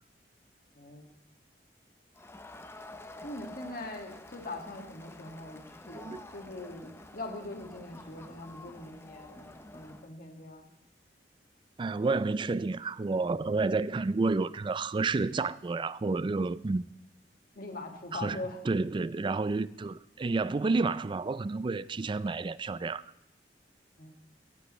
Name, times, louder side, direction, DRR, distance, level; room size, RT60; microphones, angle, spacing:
Crowd, 2.1-10.1, left 1 dB, 15° left, 0.6 m, -49 dB
voice 1, 3.2-5.6 5.9-10.7 17.6-18.6 24.0-24.1, left 2 dB, 55° left, 1.9 m, -42 dB
voice 2, 11.8-16.8 18.1-23.0, right 3 dB, 30° right, 0.4 m, -30 dB
16.5 x 10.5 x 3.1 m
head